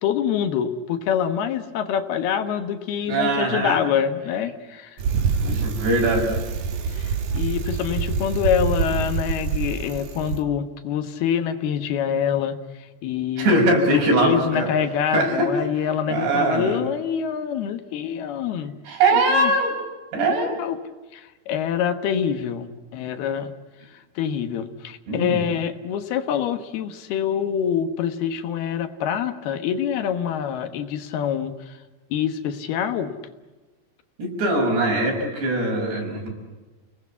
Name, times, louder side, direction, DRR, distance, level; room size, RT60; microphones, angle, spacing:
voice 1, 0.0-5.0 6.9-12.6 13.0-18.7 19.1-19.5 20.3-20.8 21.1-23.5 24.2-31.7 32.1-33.1, left 8 dB, 70° left, 8 dB, 3.1 m, -25 dB
voice 2, 3.0-3.8 5.4-6.4 13.4-14.7 15.1-15.5 16.1-16.8 18.9-19.7 20.1-20.6 25.1-25.4 34.2-36.3, right 2 dB, 85° right, 2 dB, 8.1 m, -21 dB
Bicycle, 5.0-10.4, right 6 dB, 55° right, 2.4 m, -26 dB
30.0 x 19.5 x 8.4 m, 1.2 s
omnidirectional pair, 4.9 m